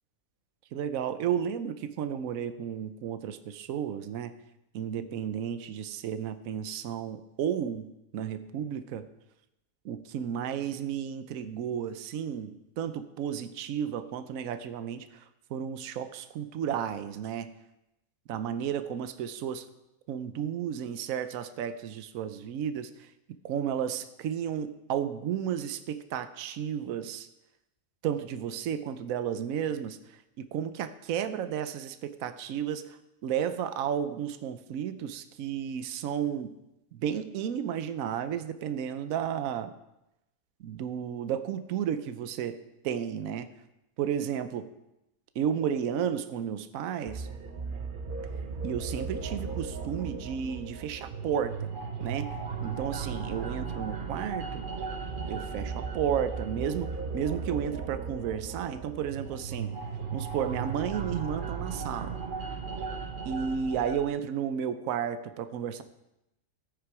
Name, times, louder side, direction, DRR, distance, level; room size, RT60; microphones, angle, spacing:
voice 1, 0.7-4.3 4.7-9.1 9.8-15.2 15.5-17.5 18.3-19.6 20.1-23.1 23.4-27.3 28.0-36.6 36.9-39.8 40.6-43.5 44.0-44.7 45.3-47.3 48.6-51.7 52.0-54.7 55.3-59.8 60.1-62.2 63.2-65.8, right 8 dB, 75° right, 11 dB, 1.1 m, -33 dB
sound 1, 47.1-64.1, right 5 dB, 40° right, 1.0 m, -36 dB
13.5 x 8.9 x 4.7 m, 0.90 s
omnidirectional pair, 1.5 m